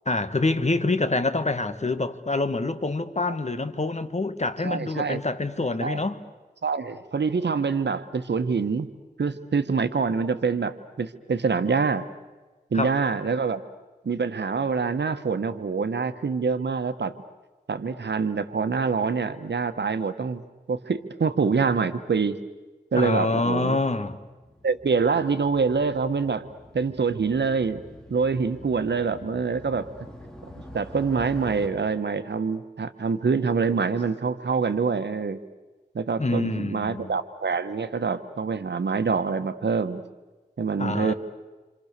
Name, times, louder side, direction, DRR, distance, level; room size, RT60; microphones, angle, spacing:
voice 1, 0.1-6.2 12.7-12.9 22.9-24.2 36.2-37.1 40.8-41.1, left 2 dB, 40° left, 1.8 m, -26 dB
voice 2, 4.6-5.2 5.8-6.0 6.6-8.9 9.2-12.0 12.7-13.6 14.0-17.1 17.7-22.4 22.9-23.8 24.6-26.5 26.7-27.8 28.1-29.9 30.7-35.4 35.9-40.0 40.6-41.1, right 5 dB, 85° right, 1.4 m, -25 dB
Motorcycle, 24.3-31.7, left 1 dB, 5° left, 4.5 m, -45 dB
28.0 x 27.5 x 6.8 m
wide cardioid pair, 60°, 17 cm